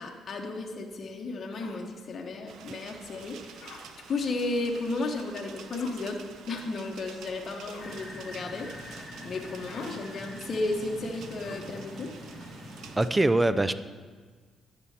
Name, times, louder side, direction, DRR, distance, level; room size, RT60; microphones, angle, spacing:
voice 1, 0.0-6.2 6.5-12.1, left 3 dB, 45° left, 0 dB, 1.1 m, -34 dB
sound 1, 1.5-1.8 3.6-3.9 5.7-6.0 7.7-8.0 9.6-10.0 11.4-11.7, left 5 dB, 80° left, 1.1 m, -46 dB
sound 2, 2.5-13.1, right 7 dB, 80° right, 0.6 m, -49 dB
sound 3, 7.8-13.0, left 1 dB, 25° left, 2.1 m, -44 dB
voice 2, 13.0-13.7, right 2 dB, 15° right, 13 dB, 0.4 m, -23 dB
11.0 x 7.0 x 4.2 m, 1.5 s
cardioid pair, 90°, 0 cm